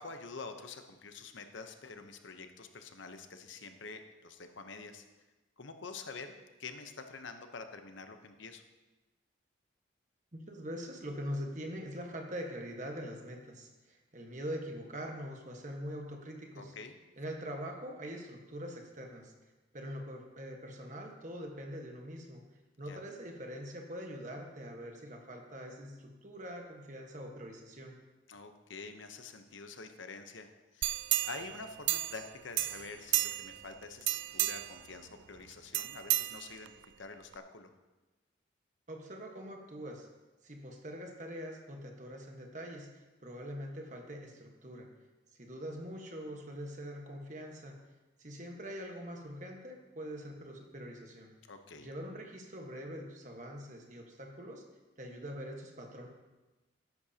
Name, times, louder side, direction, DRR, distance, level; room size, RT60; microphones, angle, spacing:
voice 1, 0.0-5.0 5.6-6.3 6.6-8.6 16.6-17.0 22.9-23.0 28.3-30.9 31.2-36.7 37.0-37.7 51.5-51.9, left 4 dB, 75° left, 7 dB, 0.9 m, -47 dB
voice 2, 10.3-16.7 17.2-19.3 19.7-22.4 22.8-28.0 38.9-40.1 40.4-44.9 45.4-47.8 48.2-51.3 51.8-54.7 55.0-56.1, equal, 40° right, 2 dB, 1.4 m, -43 dB
sound 1, 30.8-32.3 32.6-33.6 34.0-34.8 35.7-36.8 37.3-37.4, right 16 dB, 65° right, 0.3 m, -32 dB
14.0 x 11.0 x 2.8 m, 1.1 s
head